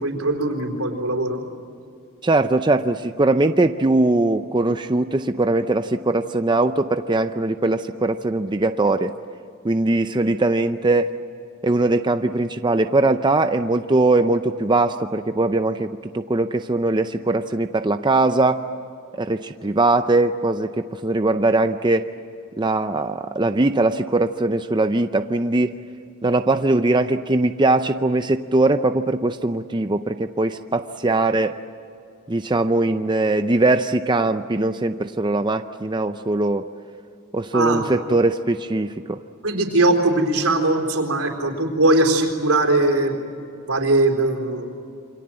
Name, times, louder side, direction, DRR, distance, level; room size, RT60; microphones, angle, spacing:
voice 1, 0.0-1.5 37.5-37.9 39.4-43.2 43.7-44.7, right 2 dB, 80° right, 3 dB, 4.1 m, -20 dB
voice 2, 2.2-9.1 9.6-11.1 11.6-18.6 19.2-22.1 22.6-25.7 26.2-31.6 32.3-36.6 37.3-39.2, right 2 dB, 20° right, 8 dB, 0.6 m, -21 dB
28.0 x 25.0 x 7.7 m, 2.5 s
head